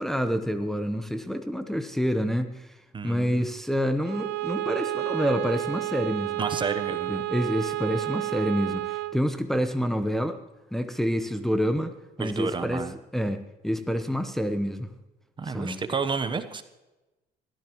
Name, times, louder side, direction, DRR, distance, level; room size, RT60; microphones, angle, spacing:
voice 1, 0.0-2.8 3.0-6.4 7.1-10.4 10.7-12.8 13.1-14.9 15.4-15.8, equal, ahead, 7 dB, 0.9 m, -28 dB
voice 2, 2.9-3.5 6.4-7.2 12.2-12.9 15.4-16.6, right 5 dB, 30° right, 9 dB, 1.0 m, -30 dB
Bowed string instrument, 4.0-9.2, right 17 dB, 80° right, 0.9 m, -31 dB
21.0 x 14.0 x 3.1 m, 1.1 s
cardioid pair, 110°, 17 cm